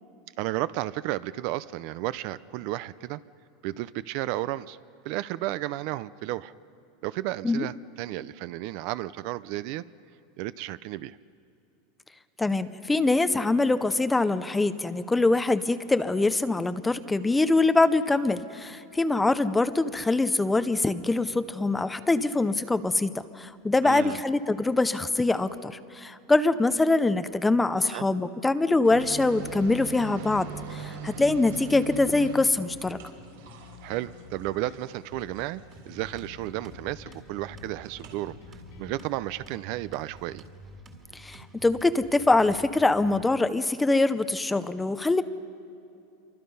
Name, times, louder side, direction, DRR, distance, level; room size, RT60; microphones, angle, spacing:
voice 1, 0.4-3.2 3.6-4.8 5.0-6.5 7.0-9.8 10.4-11.2 23.8-24.2 27.8-28.1 33.8-38.3 38.8-40.4, right 16 dB, 45° right, 17 dB, 0.4 m, -33 dB
voice 2, 12.4-33.0 41.1-45.2, left 2 dB, 5° left, 13 dB, 0.5 m, -24 dB
sound 1, 28.8-36.5 37.8-38.2, right 7 dB, 85° right, 3.9 m, -42 dB
sound 2, 29.4-39.0, left 6 dB, 85° left, 3.3 m, -49 dB
sound 3, 35.7-43.2, right 1 dB, 20° right, 2.0 m, -49 dB
27.5 x 24.0 x 5.4 m, 2.7 s
supercardioid pair, 175°, 0 cm